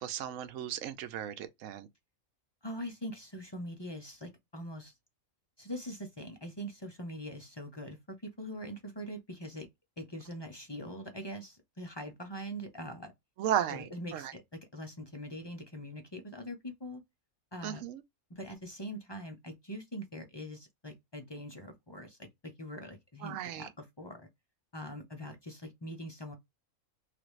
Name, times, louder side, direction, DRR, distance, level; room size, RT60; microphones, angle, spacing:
voice 1, 0.0-1.9 13.4-13.9 14.1-14.3 17.6-18.0 23.2-23.7, right 10 dB, 70° right, 1.0 m, -35 dB
voice 2, 2.6-4.9 5.6-9.7 10.0-13.1 13.7-17.0 17.5-17.8 18.3-22.2 22.4-24.3 24.7-26.3, equal, 35° left, 0.4 m, -43 dB
3.3 x 2.5 x 3.1 m
omnidirectional pair, 1.5 m